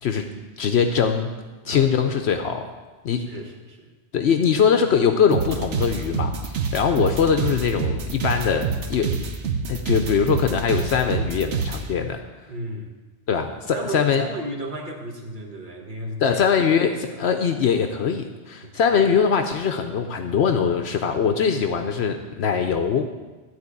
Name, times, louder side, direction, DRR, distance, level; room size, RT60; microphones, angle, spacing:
voice 1, 0.6-1.3 1.7-2.7 3.0-3.2 4.1-9.1 9.7-12.2 13.3-14.2 16.2-23.1, left 6 dB, 70° left, 6 dB, 0.9 m, -22 dB
voice 2, 1.6-2.3 3.2-3.9 12.5-12.9 13.7-16.4 18.6-19.1, right 1 dB, 45° right, 1 dB, 1.5 m, -35 dB
sound 1, 5.3-11.8, right 5 dB, 90° right, 1.2 m, -26 dB
12.5 x 4.3 x 8.3 m, 1.3 s
omnidirectional pair, 1.2 m